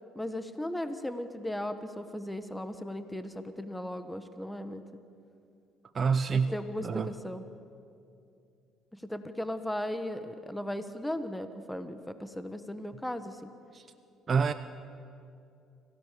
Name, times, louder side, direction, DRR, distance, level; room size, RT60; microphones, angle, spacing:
voice 1, 0.1-4.8 6.3-7.4 8.9-13.5, left 1 dB, 5° left, 10 dB, 1.3 m, -37 dB
voice 2, 5.9-6.6 6.8-7.1 13.7-13.8 14.3-14.5, right 5 dB, 40° right, 10 dB, 0.8 m, -27 dB
26.0 x 16.5 x 6.9 m, 2.5 s
supercardioid pair, 80°, 0 cm